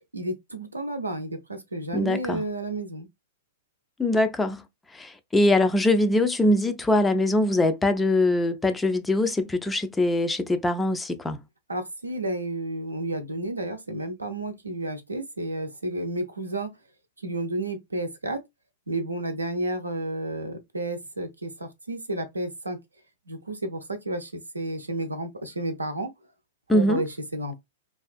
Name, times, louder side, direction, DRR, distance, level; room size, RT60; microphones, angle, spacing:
voice 1, 0.1-3.1 11.7-16.7 17.2-18.4 18.9-22.8 23.3-26.1 26.7-27.6, right 1 dB, 85° right, 0.5 m, -31 dB
voice 2, 1.9-2.4 4.0-4.6 4.9-11.4 26.7-27.0, left 1 dB, 10° left, 0.3 m, -22 dB
2.4 x 2.3 x 2.4 m
figure-of-eight pair, 105°, 0 cm